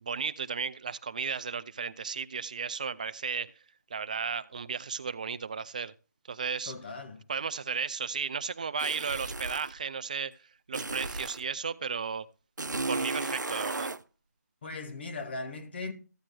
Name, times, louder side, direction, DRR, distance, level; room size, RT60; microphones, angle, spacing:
voice 1, 0.0-3.5 3.9-5.9 6.3-6.7 7.3-10.3 10.7-12.3 12.9-13.9, right 5 dB, 25° right, 0.4 m, -34 dB
voice 2, 6.6-7.2 14.6-15.9, left 3 dB, 35° left, 1.4 m, -38 dB
sound 1, 8.8-9.7 10.7-11.5 12.6-14.0, right 3 dB, 90° right, 0.6 m, -34 dB
14.5 x 8.7 x 2.2 m
figure-of-eight pair, 165°, 10 cm